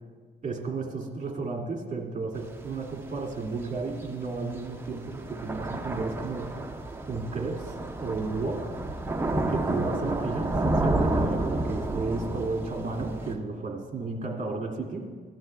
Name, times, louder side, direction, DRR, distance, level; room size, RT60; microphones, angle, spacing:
voice 1, 0.4-6.6 7.1-7.7 8.0-8.7 9.5-15.0, right 3 dB, 40° right, 0 dB, 2.2 m, -33 dB
Thunder / Rain, 2.4-13.3, right 2 dB, 10° right, 0.8 m, -31 dB
17.0 x 12.0 x 2.3 m, 1.6 s
cardioid pair, 105°, 20 cm